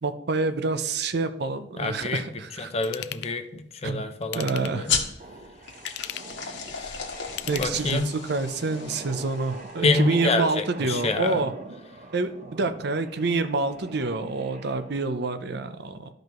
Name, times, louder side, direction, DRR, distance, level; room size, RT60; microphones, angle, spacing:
voice 1, 0.0-2.7 3.8-4.0 4.3-4.9 7.5-11.5 12.1-16.1, right 3 dB, 65° right, 10 dB, 0.6 m, -27 dB
voice 2, 1.8-4.9 6.7-7.1 7.6-8.1 9.8-11.4, left 3 dB, 35° left, 8 dB, 0.7 m, -27 dB
Ratchet pawl / Tools, 2.8-3.3 4.2-4.9 5.7-6.4 7.3-8.2 8.7-8.8, left 14 dB, 65° left, 0.3 m, -37 dB
sound 1, 4.8-9.9, left 6 dB, 80° left, 1.5 m, -34 dB
sound 2, 5.2-15.1, right 2 dB, 45° right, 1.0 m, -43 dB
13.0 x 5.2 x 3.1 m, 0.76 s
head